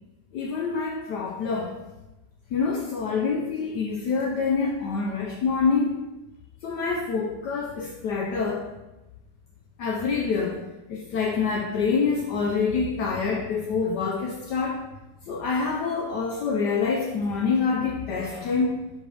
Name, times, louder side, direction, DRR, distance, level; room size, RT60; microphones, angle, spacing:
voice 1, 0.3-1.8 2.5-6.0 6.6-8.7 9.8-10.6 10.9-14.8 15.3-18.8, left 5 dB, 70° left, 1 dB, 1.1 m, -26 dB
5.0 x 5.0 x 4.8 m, 1.0 s
omnidirectional pair, 2.1 m